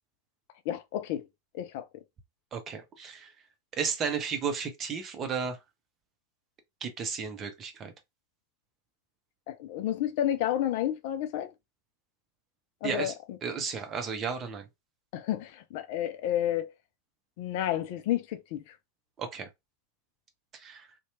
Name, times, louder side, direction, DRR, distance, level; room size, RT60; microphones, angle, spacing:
voice 1, 0.7-1.3 1.5-2.0 9.5-11.5 12.8-13.1 15.1-16.7 17.4-18.7, left 11 dB, 50° left, 0.3 m, -31 dB
voice 2, 2.5-3.3 3.8-5.6 6.8-7.9 12.8-13.1 13.4-14.7 19.2-19.5 20.5-20.9, right 6 dB, 25° right, 0.7 m, -33 dB
2.8 x 2.2 x 2.7 m
figure-of-eight pair, 90°, 0 cm